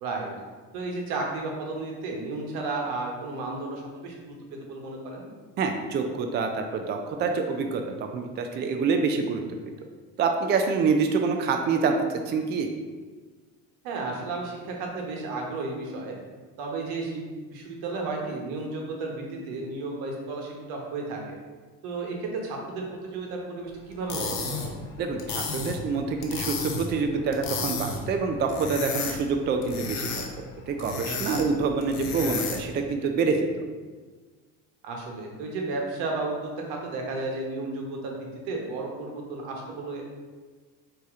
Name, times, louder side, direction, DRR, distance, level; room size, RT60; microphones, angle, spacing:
voice 1, 0.7-4.3 4.6-5.3 13.8-16.1 16.6-17.2 17.5-21.4 21.8-24.4 24.6-24.8 31.2-31.4 34.8-38.2 38.5-40.0, right 3 dB, 80° right, 0 dB, 1.1 m, -33 dB
voice 2, 5.6-9.4 10.2-11.9 12.3-12.7 25.0-30.0 30.7-33.5, right 4 dB, 30° right, 4 dB, 0.4 m, -26 dB
sound 1, 23.9-32.8, left 4 dB, 70° left, 0.9 m, -33 dB
4.7 x 2.9 x 3.6 m, 1.4 s
supercardioid pair, 110°, 35 cm